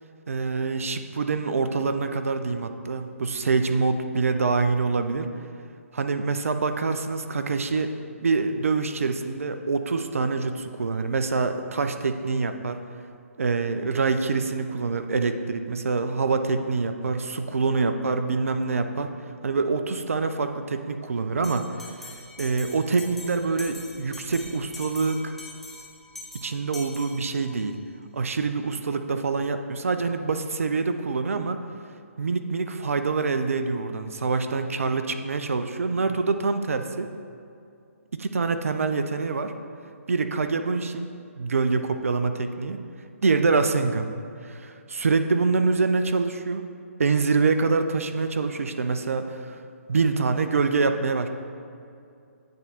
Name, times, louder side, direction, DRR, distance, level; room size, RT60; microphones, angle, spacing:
voice 1, 0.3-5.3 5.9-7.9 8.2-12.8 13.4-19.1 19.4-21.7 22.4-25.4 26.3-27.8 28.1-31.6 32.2-37.1 38.2-39.5 40.1-41.1 41.4-42.8 43.2-44.1 44.4-46.6 47.0-49.6 49.9-51.3, right 4 dB, 65° right, 8 dB, 0.5 m, -25 dB
Bell, 21.4-27.7, left 2 dB, ahead, 0.6 m, -43 dB
9.0 x 3.6 x 4.2 m, 2.5 s
figure-of-eight pair, 135°, 8 cm